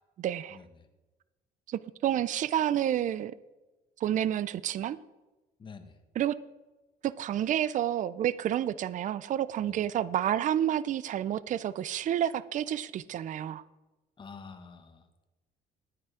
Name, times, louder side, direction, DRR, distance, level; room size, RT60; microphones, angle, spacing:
voice 1, 0.2-0.6 1.7-3.3 4.0-5.0 6.2-6.4 7.0-13.6, right 11 dB, 50° right, 18 dB, 0.5 m, -29 dB
voice 2, 5.6-6.0 9.6-9.8 14.2-15.2, left 5 dB, 30° left, 6 dB, 1.5 m, -48 dB
12.5 x 9.5 x 4.9 m, 1.1 s
cardioid pair, 110°, 17 cm